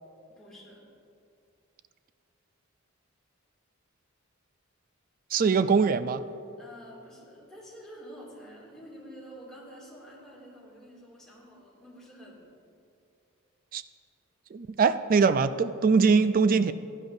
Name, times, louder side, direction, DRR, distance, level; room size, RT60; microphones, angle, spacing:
voice 1, 0.3-0.8 6.6-12.5, equal, 5° left, -6 dB, 2.5 m, -48 dB
voice 2, 5.3-6.2 13.7-13.8 14.5-16.7, right 5 dB, 45° right, 13 dB, 0.3 m, -22 dB
15.5 x 10.5 x 2.7 m, 2.6 s
head